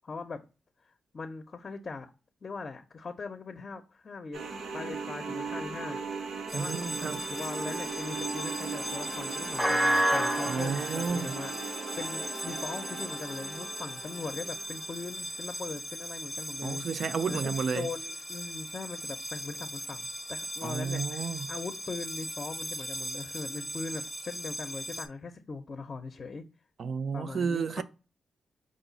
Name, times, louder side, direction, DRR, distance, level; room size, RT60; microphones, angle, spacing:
voice 1, 0.0-0.4 0.8-2.1 2.4-4.5 4.7-6.0 6.5-16.8 17.3-26.4 27.1-27.8, left 4 dB, 45° left, 0.6 m, -40 dB
sound 1, 4.3-15.1, right 5 dB, 80° right, 0.8 m, -38 dB
sound 2, 6.5-25.0, equal, ahead, 0.6 m, -35 dB
voice 2, 6.5-7.2 10.5-11.4 16.6-17.9 20.6-21.5 26.8-27.8, right 5 dB, 65° right, 0.4 m, -32 dB
5.0 x 2.4 x 3.8 m
cardioid pair, 90°, 0 cm